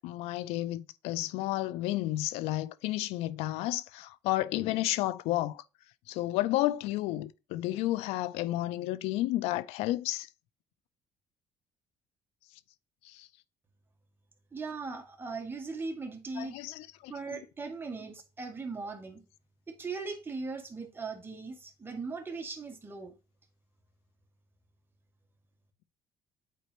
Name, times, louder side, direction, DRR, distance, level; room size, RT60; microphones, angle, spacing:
voice 1, 0.0-5.6 6.1-10.3 13.2-13.3 16.4-17.4, left 16 dB, 90° left, 0.5 m, -32 dB
voice 2, 14.5-16.6 17.1-19.2 19.7-23.1, right 4 dB, 20° right, 1.8 m, -39 dB
8.4 x 4.3 x 2.9 m
cardioid pair, 95°, 10 cm